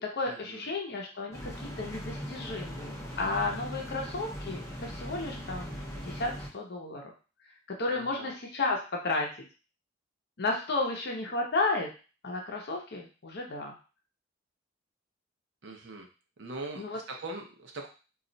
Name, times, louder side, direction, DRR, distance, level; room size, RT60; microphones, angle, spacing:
voice 1, 0.0-7.0 7.7-9.4 10.4-11.9 12.2-13.7 16.8-17.0, left 3 dB, 55° left, 0 dB, 0.7 m, -33 dB
sound 1, 1.3-6.5, equal, 15° left, 0.6 m, -40 dB
voice 2, 7.9-8.3 15.6-16.1 16.4-17.9, right 2 dB, 65° right, 2 dB, 0.6 m, -41 dB
2.4 x 2.1 x 3.8 m, 0.33 s
head